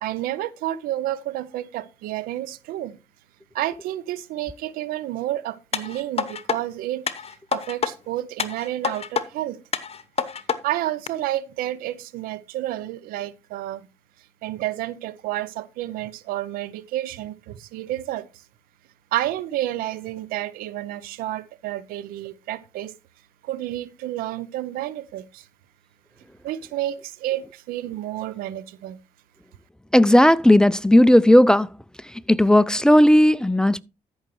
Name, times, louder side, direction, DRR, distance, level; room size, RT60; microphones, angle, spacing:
voice 1, 0.0-3.0 3.5-7.1 7.5-9.6 10.6-13.9 14.4-18.3 19.1-22.9 23.4-25.5 26.4-29.0, right 14 dB, 80° right, 0.6 m, -30 dB
sound 1, 5.7-6.6 7.1-7.9 8.4-9.3 9.7-10.6 11.1-11.2, left 6 dB, 45° left, 1.0 m, -27 dB
voice 2, 29.9-31.7 32.3-33.8, left 1 dB, 5° left, 0.4 m, -15 dB
13.5 x 6.4 x 3.0 m
hypercardioid pair, 50°, 15 cm